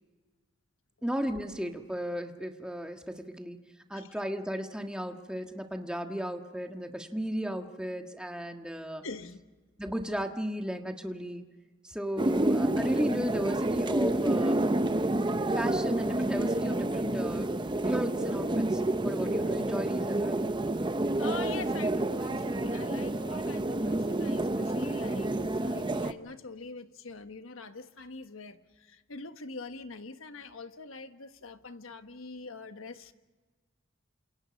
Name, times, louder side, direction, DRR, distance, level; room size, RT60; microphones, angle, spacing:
voice 1, 1.0-3.6 3.9-9.0 9.8-11.4 11.8-14.6 15.5-17.5 17.8-20.4, equal, 5° right, 1.5 m, -35 dB
voice 2, 9.0-9.4 21.2-33.1, left 3 dB, 85° left, 1.3 m, -44 dB
sound 1, 12.2-26.1, right 1 dB, 25° right, 0.7 m, -29 dB
28.5 x 27.5 x 5.3 m
head